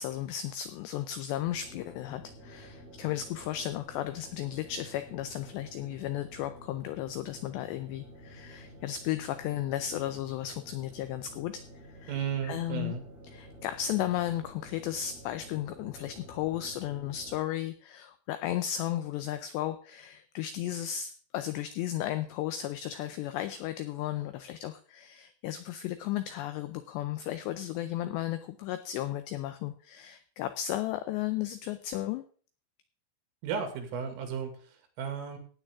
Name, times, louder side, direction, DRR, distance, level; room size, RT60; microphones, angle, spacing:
voice 1, 0.0-12.1 12.5-13.0 13.3-32.2, left 12 dB, 90° left, 10 dB, 2.4 m, -34 dB
sound 1, 1.4-17.4, equal, ahead, 4.4 m, -51 dB
voice 2, 12.1-13.0 33.4-35.4, right 7 dB, 85° right, 5 dB, 4.6 m, -34 dB
15.0 x 9.1 x 3.6 m, 0.42 s
omnidirectional pair, 5.6 m